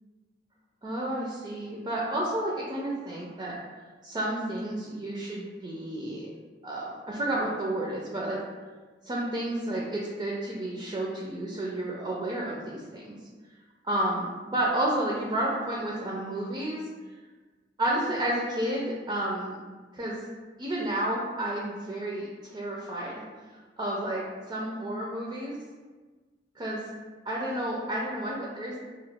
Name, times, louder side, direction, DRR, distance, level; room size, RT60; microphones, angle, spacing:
voice 1, 0.8-3.5 4.0-6.3 6.6-8.4 9.0-13.2 13.8-16.8 17.8-19.6 19.9-20.2 20.6-23.2 23.8-24.2 24.5-25.5 26.6-26.8 27.3-28.8, right 1 dB, 25° right, -4 dB, 0.4 m, -31 dB
2.9 x 2.1 x 3.4 m, 1.3 s
head